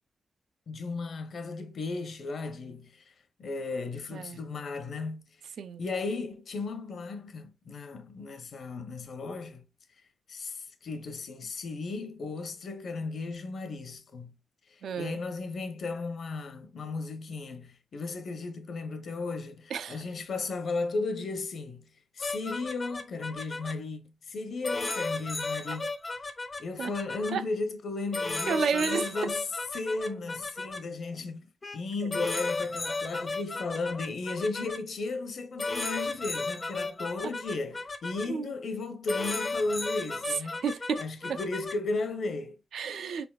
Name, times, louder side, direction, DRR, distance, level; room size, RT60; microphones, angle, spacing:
voice 1, 0.7-3.1 3.4-5.2 5.8-9.7 10.3-14.4 14.7-21.8 22.1-25.9 26.6-29.4 29.7-31.5 31.7-40.6 41.0-42.6, left 3 dB, 55° left, 0.7 m, -35 dB
voice 2, 4.1-4.4 5.6-5.8 14.8-15.2 19.7-20.0 25.8-25.9 26.8-26.9 27.3-27.4 28.4-29.3 32.0-32.1 38.3-38.5 40.3-41.4 42.7-43.3, right 6 dB, 80° right, 0.4 m, -32 dB
sound 1, 22.2-23.7 24.6-27.3 28.1-30.8 31.6-31.8 32.1-34.8 35.6-38.3 39.1-41.7, left 3 dB, 25° left, 0.4 m, -34 dB
4.8 x 3.4 x 2.3 m
wide cardioid pair, 155°, 0 cm